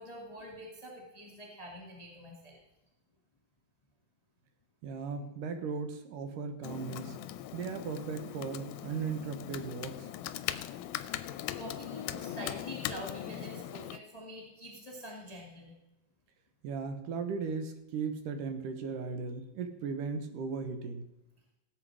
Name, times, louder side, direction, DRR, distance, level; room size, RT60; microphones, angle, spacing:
voice 1, 0.0-2.6 11.5-15.7, equal, 15° left, -3 dB, 2.1 m, -45 dB
voice 2, 4.8-7.2 7.5-10.1 16.6-21.0, right 5 dB, 75° right, 7 dB, 2.8 m, -37 dB
Computer keyboard, 6.6-14.0, left 12 dB, 80° left, 2.1 m, -40 dB
17.5 x 8.1 x 4.9 m, 0.97 s
omnidirectional pair, 3.9 m